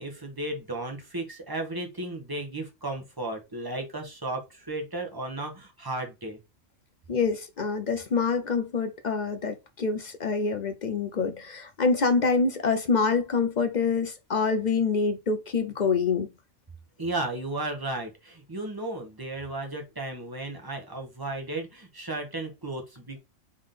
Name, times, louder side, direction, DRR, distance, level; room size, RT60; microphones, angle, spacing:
voice 1, 0.0-6.4 17.0-23.2, right 2 dB, 20° right, 1.2 m, -34 dB
voice 2, 7.1-16.3, left 4 dB, 50° left, 0.6 m, -26 dB
3.7 x 3.6 x 3.8 m
omnidirectional pair, 1.3 m